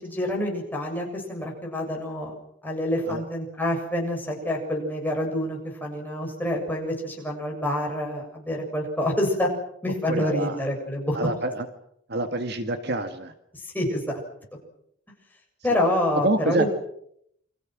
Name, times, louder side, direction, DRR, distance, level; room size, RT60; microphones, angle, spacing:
voice 1, 0.0-2.3 2.6-9.5 9.8-11.2 13.6-14.0 15.6-16.7, left 1 dB, 10° left, -1 dB, 7.2 m, -27 dB
voice 2, 10.1-10.6 11.1-11.7 12.1-13.3 16.1-16.7, right 2 dB, 50° right, 7 dB, 1.9 m, -26 dB
29.0 x 25.0 x 6.2 m, 0.72 s
head